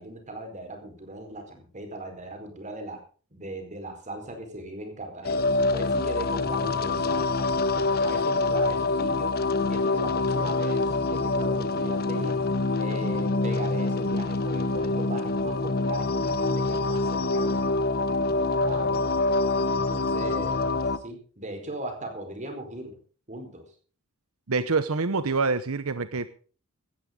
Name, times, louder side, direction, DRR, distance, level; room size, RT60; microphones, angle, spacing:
voice 1, 0.0-3.0 3.3-5.5 5.7-7.7 8.0-9.3 9.6-12.4 12.8-17.8 18.6-19.1 19.7-23.0 23.3-23.6, right 1 dB, 35° right, 5 dB, 4.6 m, -38 dB
sound 1, 5.2-21.0, left 3 dB, 45° left, 1.0 m, -25 dB
voice 2, 24.5-26.3, right 4 dB, 85° right, 12 dB, 0.9 m, -26 dB
17.0 x 13.5 x 3.9 m, 0.40 s
head